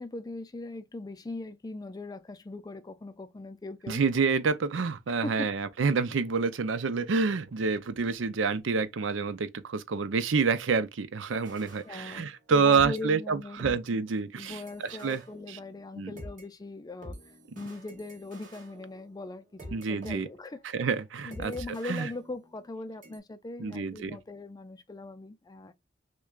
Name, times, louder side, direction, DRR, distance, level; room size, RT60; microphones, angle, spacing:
voice 1, 0.0-4.0 5.2-5.5 11.8-14.0 14.4-20.6 21.2-25.7, left 2 dB, 20° left, 0.4 m, -40 dB
voice 2, 3.9-15.2 15.5-15.6 16.0-16.1 19.7-20.3 20.7-21.5 21.8-22.1 23.6-24.2, right 5 dB, 85° right, 0.5 m, -28 dB
sound 1, 11.3-12.5 12.7-16.5 17.0-20.1 20.5-20.7 21.3-22.7 23.0-23.2, equal, 45° right, 1.8 m, -48 dB
6.2 x 2.2 x 2.3 m
head